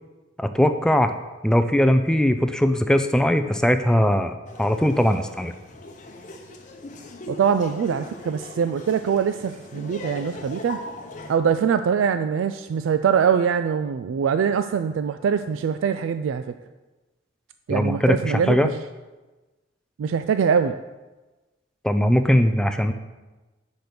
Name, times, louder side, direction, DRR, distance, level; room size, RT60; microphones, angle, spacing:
voice 1, 0.4-1.1 1.4-5.5 17.7-18.7 21.8-22.9, equal, 5° left, 8 dB, 0.3 m, -20 dB
Laughter, 4.5-11.4, left 2 dB, 40° left, 0.8 m, -40 dB
voice 2, 7.3-10.8 11.3-16.4 17.7-18.7 20.0-20.8, right 7 dB, 80° right, 10 dB, 0.3 m, -23 dB
6.1 x 5.2 x 6.6 m, 1.2 s
head